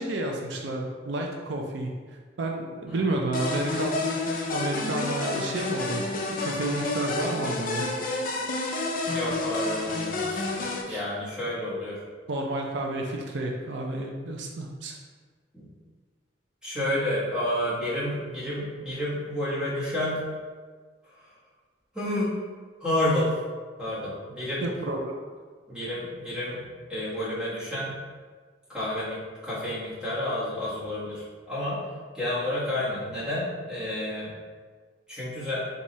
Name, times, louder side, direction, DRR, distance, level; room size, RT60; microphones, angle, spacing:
voice 1, 0.0-1.9 2.4-4.1 4.5-7.9 10.9-11.0 12.3-15.0 24.6-25.1, right 2 dB, 75° right, 1 dB, 0.5 m, -30 dB
sound 1, 3.3-10.8, left 2 dB, 45° left, 0.5 m, -29 dB
voice 2, 9.1-12.0 15.5-15.7 16.6-20.3 21.1-21.3 21.9-22.4 22.8-23.3 23.8-24.7 25.7-26.6 26.9-28.0 28.7-31.8 32.1-34.3 35.1-35.6, left 1 dB, 5° right, -10 dB, 1.5 m, -30 dB
4.7 x 2.7 x 4.1 m, 1.5 s
head